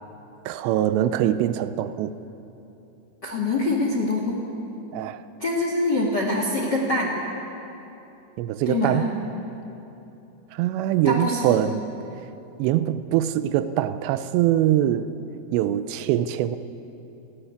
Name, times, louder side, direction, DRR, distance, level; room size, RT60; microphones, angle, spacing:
voice 1, 0.5-2.1 4.9-5.2 8.4-9.1 10.5-11.9 12.6-15.2 15.5-16.6, right 12 dB, 85° right, 12 dB, 2.8 m, -23 dB
voice 2, 3.2-4.4 5.4-7.1 8.7-9.0 11.0-11.6, left 2 dB, 45° left, 0 dB, 1.4 m, -24 dB
28.5 x 10.5 x 9.3 m, 2.9 s
omnidirectional pair, 5.1 m